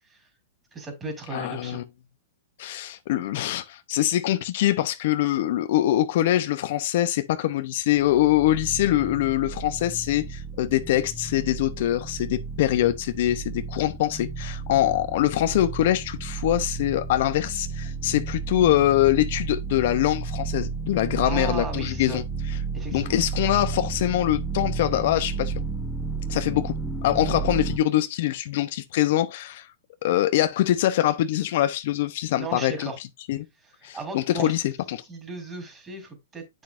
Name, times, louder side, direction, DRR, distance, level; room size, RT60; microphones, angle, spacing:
voice 1, 0.7-1.8 21.2-22.2 22.7-23.2 32.3-33.0 33.6-34.5 35.1-36.6, right 3 dB, 15° right, 3.7 m, -36 dB
voice 2, 1.3-1.8 2.6-22.2 22.9-25.5 26.3-26.7 27.0-29.7 30.0-32.9 33.3-33.5 33.8-35.0, left 13 dB, 60° left, 0.7 m, -24 dB
sound 1, 7.9-27.8, right 5 dB, ahead, 0.9 m, -32 dB
8.4 x 6.1 x 2.5 m
hypercardioid pair, 145°, 0 cm